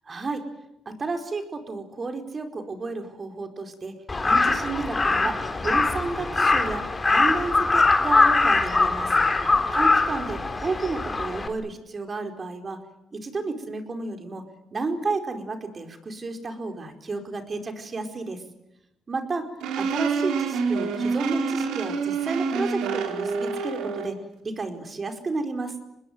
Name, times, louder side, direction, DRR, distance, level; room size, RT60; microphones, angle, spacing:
voice 1, 0.1-0.4 0.9-3.9 4.2-9.1 9.7-12.8 13.1-14.4 14.7-18.4 19.1-19.5 19.8-24.2 24.4-25.7, right 3 dB, 35° right, 6 dB, 4.7 m, -32 dB
Crow, 4.1-11.5, left 3 dB, 25° left, 3.7 m, -22 dB
sound 1, 19.6-24.2, right 5 dB, 90° right, 4.3 m, -27 dB
26.0 x 20.5 x 9.5 m, 0.83 s
cardioid pair, 90°, 0 cm